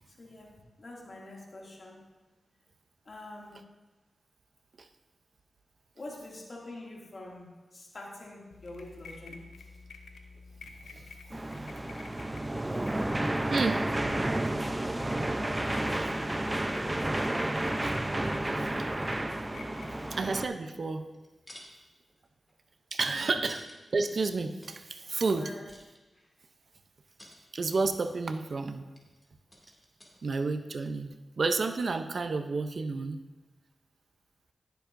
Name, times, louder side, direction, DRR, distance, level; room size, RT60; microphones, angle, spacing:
voice 1, 0.1-0.5 0.8-2.0 3.0-3.7 5.9-9.7 19.9-20.0 21.7-21.8 25.4-25.7, left 2 dB, 55° left, -2 dB, 2.4 m, -46 dB
sound 1, 8.5-20.4, left 4 dB, 85° left, 0.8 m, -49 dB
voice 2, 10.8-11.1 13.1-13.2 13.5-13.8 20.1-21.1 22.9-23.6 23.9-25.5 27.5-28.8 30.2-33.2, right 3 dB, 65° right, 8 dB, 0.6 m, -31 dB
sound 2, 11.3-20.5, right 1 dB, 20° right, 0.6 m, -31 dB
sound 3, 21.1-21.7 22.1-24.9 25.7-26.4 27.1-28.2 28.9-30.6 30.8-30.9, left 1 dB, 20° left, 2.5 m, -53 dB
14.5 x 7.1 x 2.6 m, 1.2 s
cardioid pair, 40°, 0 cm